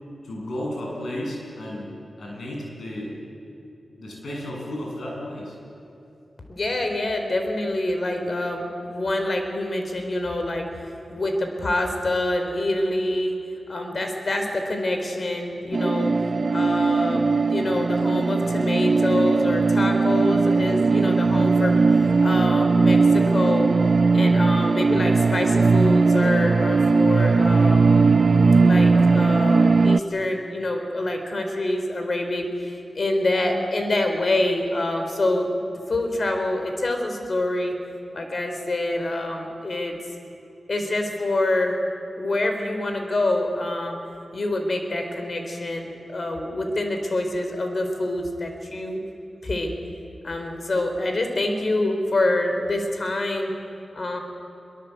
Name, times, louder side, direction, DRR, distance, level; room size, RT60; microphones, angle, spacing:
voice 1, 0.2-1.9 2.2-3.1 4.0-5.5, left 1 dB, 75° left, -2 dB, 7.9 m, -33 dB
voice 2, 6.5-13.4 13.7-16.1 16.5-23.7 24.1-28.0 28.6-35.5 35.9-37.7 38.1-40.0 40.7-41.8 42.2-44.0 44.3-49.0 49.4-49.7 50.2-53.5 53.9-54.2, left 1 dB, 55° left, 5 dB, 4.2 m, -26 dB
sound 1, 15.7-30.0, right 4 dB, 55° right, 0.6 m, -19 dB
24.0 x 22.5 x 8.1 m, 2.9 s
cardioid pair, 50°, 0 cm